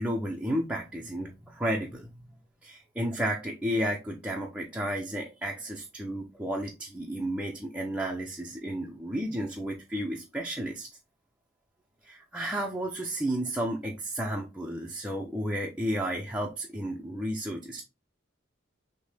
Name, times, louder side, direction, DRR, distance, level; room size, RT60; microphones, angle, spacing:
voice 1, 0.0-2.1 2.6-10.9 12.0-17.8, right 1 dB, 5° right, -1 dB, 0.5 m, -32 dB
6.3 x 2.2 x 3.3 m, 0.27 s
head